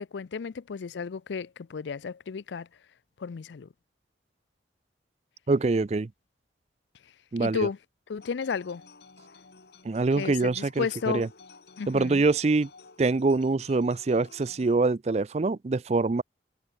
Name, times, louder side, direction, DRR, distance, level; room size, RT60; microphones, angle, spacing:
voice 1, 0.0-2.7 3.2-3.7 7.4-7.8 8.1-8.8 10.2-11.3 11.8-12.2, left 5 dB, 80° left, 0.4 m, -33 dB
voice 2, 5.5-6.1 7.3-7.7 9.8-11.3 11.9-12.7 13.0-16.2, right 3 dB, 35° right, 0.4 m, -25 dB
sound 1, 8.2-14.8, left 4 dB, 65° left, 1.8 m, -53 dB
head